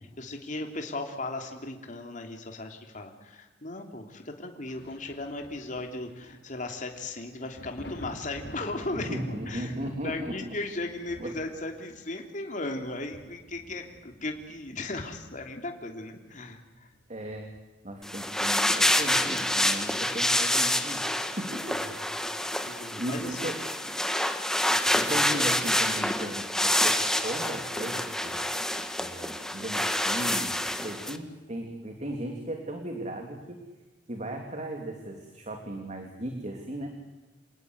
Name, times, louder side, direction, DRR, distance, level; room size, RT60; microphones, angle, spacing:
voice 1, 0.2-9.8 10.0-16.9 22.7-23.5 24.5-25.2, left 2 dB, 45° left, 4 dB, 3.2 m, -37 dB
Thunder, 4.6-16.0 16.4-17.9 18.3-18.4 18.9-20.2 21.6-21.7, left 1 dB, 65° left, 4.5 m, -50 dB
voice 2, 8.9-10.5 11.2-11.3 17.1-17.5 17.8-21.8 23.0-23.6 24.9-28.4 29.0-33.6 34.1-36.9, right 1 dB, 40° right, 3 dB, 3.0 m, -36 dB
sound 1, 18.0-31.2, left 1 dB, 5° left, 1.6 m, -27 dB
28.0 x 19.0 x 8.1 m, 1.2 s
head